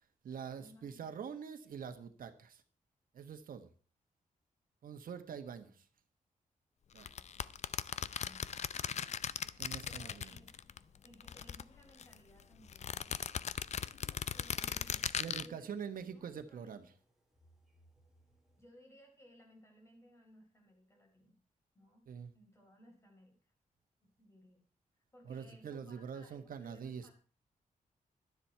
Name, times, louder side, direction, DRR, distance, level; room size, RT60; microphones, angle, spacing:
voice 1, 0.0-2.6 3.1-3.7 4.8-5.9 6.9-7.1 9.6-10.4 15.2-16.9 22.1-22.3 25.2-27.1, right 7 dB, 85° right, 9 dB, 1.3 m, -45 dB
voice 2, 0.5-1.0 6.9-7.4 7.9-8.7 9.5-10.5 11.0-13.2 14.3-15.1 15.4-16.8 18.6-21.4 21.7-22.0 22.3-23.4 24.2-24.7 25.1-27.1, equal, 20° left, 2 dB, 4.6 m, -62 dB
sound 1, 7.0-10.8 11.0-12.2 12.7-15.5, left 7 dB, 55° left, 0.5 m, -38 dB
sound 2, 9.0-18.7, right 1 dB, 5° right, 2.7 m, -71 dB
12.0 x 10.5 x 4.6 m, 0.40 s
wide cardioid pair, 135°, 14 cm